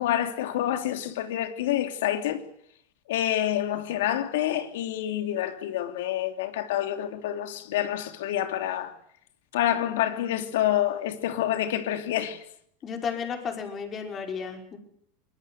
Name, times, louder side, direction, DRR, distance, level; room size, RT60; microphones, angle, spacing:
voice 1, 0.0-2.4 3.1-8.9 9.5-12.4, left 12 dB, 80° left, 3.0 m, -27 dB
voice 2, 12.8-14.8, left 6 dB, 30° left, 5.5 m, -33 dB
23.5 x 21.5 x 8.0 m
supercardioid pair, 120°, 0 cm